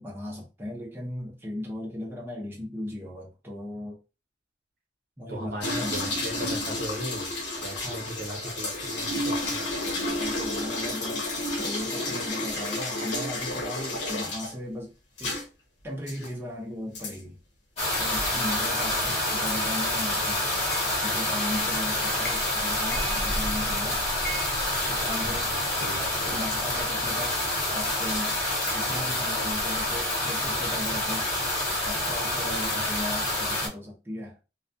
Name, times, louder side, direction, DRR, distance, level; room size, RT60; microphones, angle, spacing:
voice 1, 0.0-4.0 5.2-6.2 7.7-8.1 10.1-11.3 11.6-14.9 15.2-15.4 15.8-17.4 18.0-20.4 21.0-24.0 24.9-25.5 26.3-28.4 28.7-31.3 31.8-34.4, left 1 dB, 10° right, 0.6 m, -37 dB
voice 2, 5.3-7.3 7.6-9.6 25.2-26.4 32.7-32.8, equal, 55° right, 0.9 m, -38 dB
sound 1, 5.6-14.5 15.2-15.4 16.1-16.3 16.9-17.1 17.9-18.1, left 1 dB, 80° left, 0.8 m, -31 dB
sound 2, 17.8-33.7, left 1 dB, 40° left, 1.0 m, -27 dB
sound 3, 20.0-20.1 20.7-21.0 21.6-21.9 22.2-22.6 22.9-23.7 24.2-25.5, right 2 dB, 55° left, 0.4 m, -40 dB
2.3 x 2.2 x 2.5 m
head